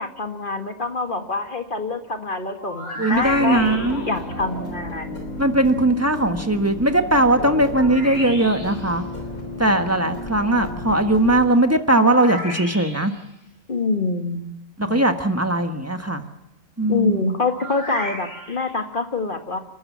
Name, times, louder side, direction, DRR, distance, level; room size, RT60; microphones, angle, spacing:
voice 1, 0.0-3.8 4.0-5.2 13.7-14.4 16.9-19.6, left 3 dB, 40° left, 6 dB, 1.9 m, -25 dB
sound 1, 2.6-4.2 7.7-8.9 12.0-13.2 17.4-18.7, equal, 55° left, 6.4 m, -34 dB
voice 2, 3.0-4.0 5.4-9.0 9.6-13.1 14.8-16.2 16.8-17.3, right 1 dB, 10° right, 7 dB, 1.4 m, -19 dB
squeaky clean retro beat, 3.1-11.5, left 1 dB, 85° left, 3.9 m, -33 dB
29.5 x 13.0 x 7.5 m, 0.87 s
omnidirectional pair, 1.5 m